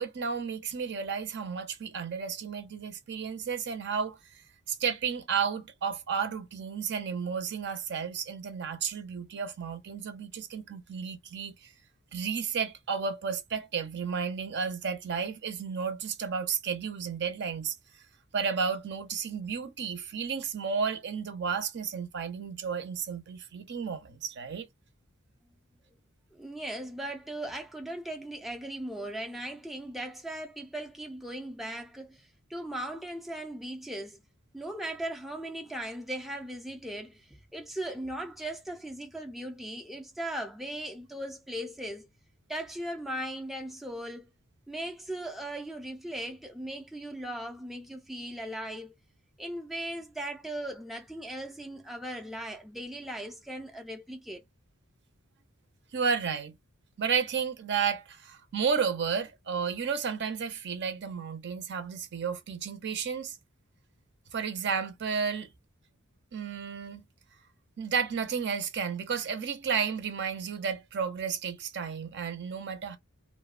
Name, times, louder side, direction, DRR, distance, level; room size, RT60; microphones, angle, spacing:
voice 1, 0.0-4.2 4.7-11.7 12.1-17.8 18.3-24.7 55.9-56.6 57.0-63.4 64.3-65.5 66.3-67.1 67.8-73.0, right 6 dB, 55° right, 0.6 m, -32 dB
voice 2, 26.3-34.2 34.5-42.1 42.5-44.3 44.7-48.9 49.4-54.4, right 1 dB, ahead, 0.4 m, -38 dB
2.6 x 2.1 x 2.3 m
head